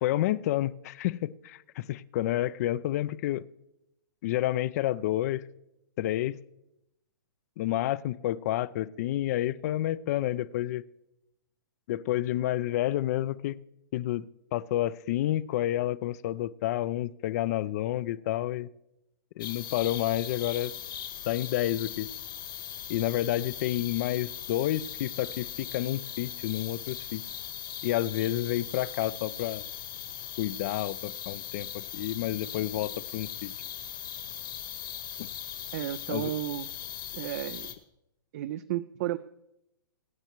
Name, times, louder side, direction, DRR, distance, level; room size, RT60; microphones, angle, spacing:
voice 1, 0.0-3.4 4.2-5.4 6.0-6.3 7.6-10.8 11.9-13.6 13.9-18.7 19.4-20.7 21.3-22.1 22.9-27.2 27.8-29.6 30.4-33.5 36.1-36.3, left 14 dB, 45° left, 19 dB, 0.4 m, -29 dB
sound 1, 19.4-37.7, left 10 dB, 70° left, 1.9 m, -39 dB
voice 2, 35.7-36.7 37.1-37.8 38.3-39.2, right 14 dB, 45° right, 13 dB, 0.4 m, -33 dB
23.0 x 8.9 x 3.0 m, 0.87 s
hypercardioid pair, 140°, 12 cm